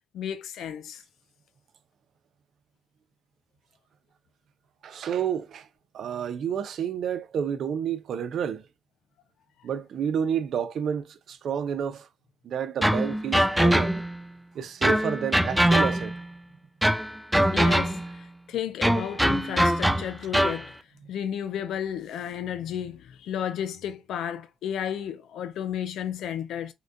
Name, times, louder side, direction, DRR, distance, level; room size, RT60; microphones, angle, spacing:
voice 1, 0.1-1.0 17.5-20.8 21.1-26.7, left 9 dB, 75° left, 0.4 m, -33 dB
voice 2, 4.8-5.7 5.9-8.7 9.6-12.1 12.4-13.9 14.5-16.2, right 8 dB, 65° right, 0.5 m, -30 dB
sound 1, 12.8-14.2 14.8-16.3 16.8-18.2 18.8-20.7, equal, ahead, 0.3 m, -23 dB
3.7 x 2.2 x 2.4 m
cardioid pair, 90°, 0 cm